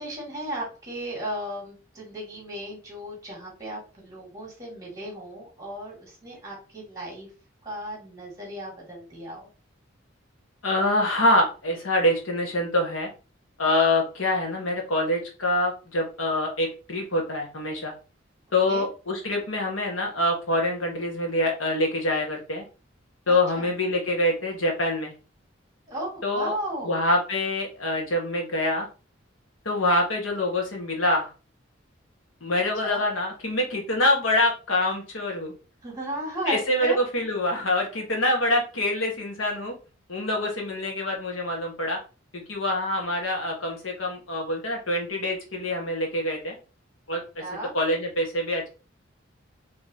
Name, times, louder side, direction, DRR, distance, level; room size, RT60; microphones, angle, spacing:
voice 1, 0.0-7.3 7.6-9.5 18.7-18.9 23.3-23.7 25.9-27.0 32.8-33.0 35.8-37.0 47.4-47.7, right 1 dB, 15° right, -3 dB, 2.4 m, -35 dB
voice 2, 10.6-13.1 13.6-17.9 18.5-22.6 23.3-25.1 26.2-26.5 26.8-28.9 29.6-31.3 32.4-35.5 36.5-39.7 40.1-42.0 42.3-46.5 47.1-47.4 47.7-48.7, left 1 dB, 85° left, 1 dB, 1.3 m, -25 dB
5.0 x 3.2 x 2.8 m, 0.34 s
head